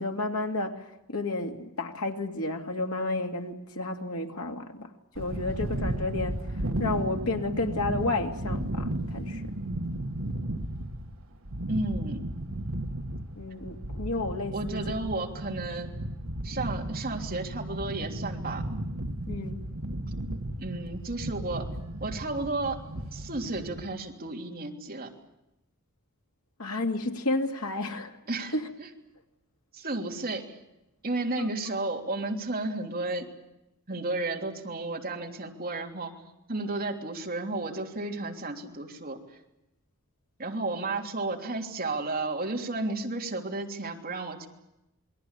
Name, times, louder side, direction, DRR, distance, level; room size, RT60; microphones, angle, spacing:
voice 1, 0.0-9.6 13.3-14.8 19.3-19.7 26.6-28.2 28.5-28.7 31.4-31.5, left 2 dB, 85° left, 2.4 m, -32 dB
sound 1, 5.2-23.8, right 1 dB, 65° right, 1.6 m, -34 dB
voice 2, 11.7-12.2 14.5-15.9 16.4-18.6 20.6-21.7 22.0-22.8 23.1-25.1 28.3-28.5 28.8-28.9 29.7-30.5 31.0-33.3 33.9-36.1 36.5-39.2 40.4-44.5, right 2 dB, 40° right, 3.2 m, -32 dB
28.0 x 22.0 x 8.2 m
head